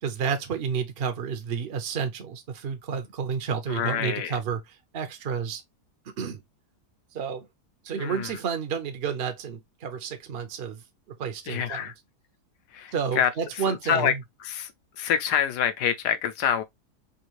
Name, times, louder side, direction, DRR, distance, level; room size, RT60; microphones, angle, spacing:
voice 1, 0.0-5.6 6.2-6.4 7.1-7.5 7.8-10.8 11.1-11.9 12.9-14.2, right 6 dB, 60° right, 0.6 m, -30 dB
voice 2, 3.7-4.3 8.0-8.4 11.5-11.9 12.7-13.3 13.6-14.1 14.4-14.7 15.0-16.6, left 9 dB, 85° left, 1.3 m, -26 dB
3.6 x 2.6 x 2.9 m
omnidirectional pair, 1.7 m